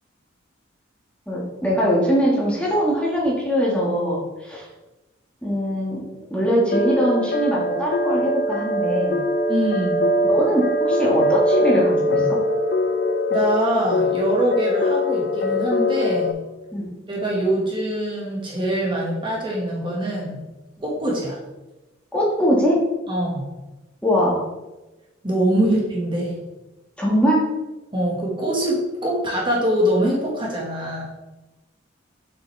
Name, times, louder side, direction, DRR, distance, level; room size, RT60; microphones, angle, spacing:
voice 1, 1.3-4.7 5.4-6.0 6.3-9.2 10.2-12.4 16.7-16.9 22.1-22.8 24.0-24.4 27.0-27.4, equal, 5° left, -5 dB, 1.6 m, -21 dB
sound 1, 6.7-16.3, left 1 dB, 55° left, 0.6 m, -22 dB
voice 2, 9.5-10.0 13.3-16.4 17.1-20.4 20.8-21.4 23.1-23.5 25.2-26.4 27.9-31.1, right 1 dB, 25° right, -3 dB, 1.6 m, -23 dB
7.5 x 6.2 x 3.3 m, 1.1 s
head